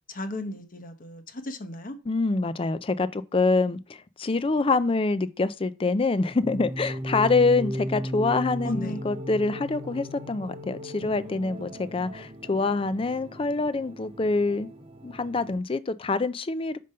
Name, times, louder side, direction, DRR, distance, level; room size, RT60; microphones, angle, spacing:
voice 1, 0.1-2.0 8.6-9.0, left 1 dB, 40° left, 1.0 m, -35 dB
voice 2, 2.1-14.7 15.0-16.8, left 3 dB, 25° left, 0.4 m, -25 dB
sound 1, 6.4-15.6, equal, 25° right, 0.7 m, -36 dB
5.3 x 5.2 x 5.5 m
head